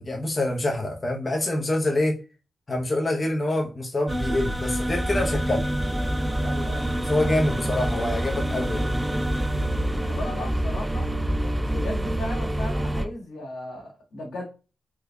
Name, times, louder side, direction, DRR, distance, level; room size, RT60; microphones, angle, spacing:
voice 1, 0.0-2.1 2.7-5.7 7.1-8.9, left 1 dB, 40° left, 0.7 m, -26 dB
sound 1, 4.1-13.1, right 1 dB, 15° right, 0.4 m, -26 dB
voice 2, 6.4-6.9 10.1-11.1 11.7-14.4, left 1 dB, 85° left, 1.5 m, -36 dB
3.6 x 2.6 x 2.2 m
supercardioid pair, 40°, 0 cm